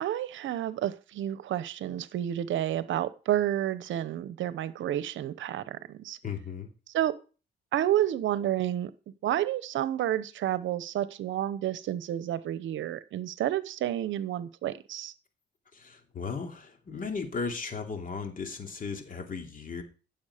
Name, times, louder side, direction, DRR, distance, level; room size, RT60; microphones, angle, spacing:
voice 1, 0.0-6.2 6.9-7.1 7.7-8.9 9.2-15.1, right 12 dB, 75° right, 0.9 m, -30 dB
voice 2, 6.2-6.7 15.7-19.8, left 5 dB, 45° left, 2.8 m, -36 dB
15.5 x 7.2 x 5.0 m
cardioid pair, 90°, 20 cm